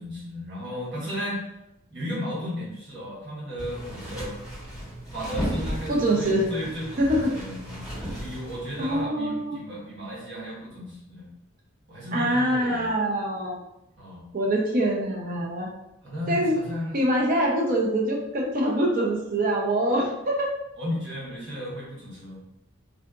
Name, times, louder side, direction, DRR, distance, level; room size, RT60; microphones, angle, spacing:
voice 1, 0.0-1.5 1.9-4.4 5.1-7.9 8.2-11.3 11.9-12.9 14.0-14.2 16.0-17.0 20.8-22.4, equal, 60° right, -7 dB, 1.0 m, -34 dB
sound 1, 3.6-9.0, equal, ahead, 1.0 m, -35 dB
voice 2, 5.9-6.5 7.0-7.3 8.8-9.5 12.1-13.6 14.3-15.7 16.3-16.6 16.9-20.5, right 1 dB, 40° right, -1 dB, 0.5 m, -24 dB
3.7 x 2.4 x 2.3 m, 0.87 s
head